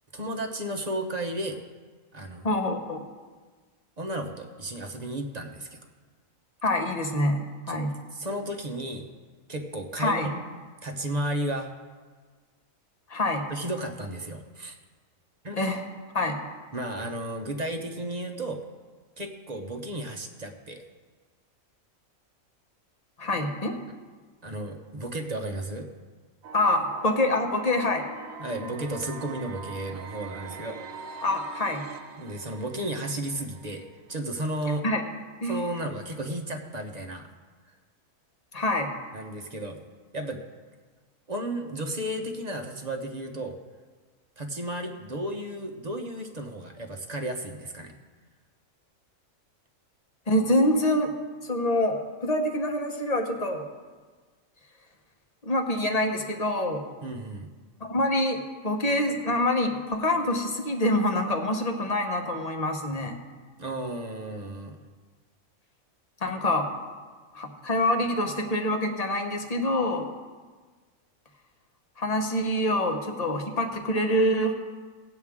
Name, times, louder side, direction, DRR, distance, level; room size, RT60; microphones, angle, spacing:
voice 1, 0.1-1.6 2.1-2.5 4.0-5.8 7.7-7.8 8.1-9.1 9.5-10.4 10.8-11.7 13.5-14.8 15.4-15.6 16.7-18.6 19.2-20.8 24.4-25.9 28.4-31.0 32.2-33.8 34.1-34.8 35.5-37.3 39.1-39.8 40.1-40.4 41.3-43.6 44.4-47.9 57.0-57.5 63.6-64.8, right 1 dB, 35° right, 4 dB, 0.9 m, -33 dB
voice 2, 2.4-3.0 6.6-7.9 10.0-10.3 13.1-13.5 15.5-15.8 16.1-16.4 23.2-23.8 26.5-28.1 31.2-31.8 34.8-35.0 35.4-35.6 38.5-38.9 50.3-51.1 51.4-53.6 55.4-56.8 57.8-63.2 66.2-66.7 67.3-70.1 72.0-74.5, left 1 dB, 30° left, 4 dB, 1.1 m, -26 dB
sound 1, 26.4-34.4, right 5 dB, 80° right, 1.1 m, -43 dB
18.0 x 8.1 x 3.6 m, 1.4 s
omnidirectional pair, 1.4 m